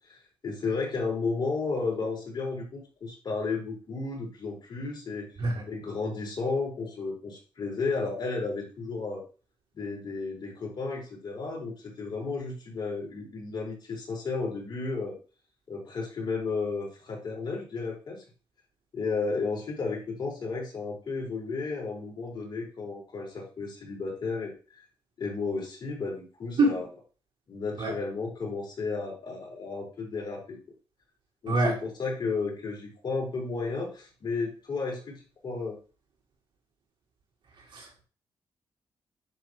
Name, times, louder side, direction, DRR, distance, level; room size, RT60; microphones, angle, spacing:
voice 1, 0.1-5.3 5.7-9.2 9.8-15.2 15.7-18.2 18.9-24.8 25.2-26.9 27.5-30.6 31.4-35.8, left 4 dB, 55° left, -1 dB, 5.2 m, -33 dB
voice 2, 37.7-38.0, right 2 dB, 65° right, -3 dB, 5.1 m, -25 dB
11.0 x 4.1 x 4.7 m, 0.36 s
cardioid pair, 65°, 9 cm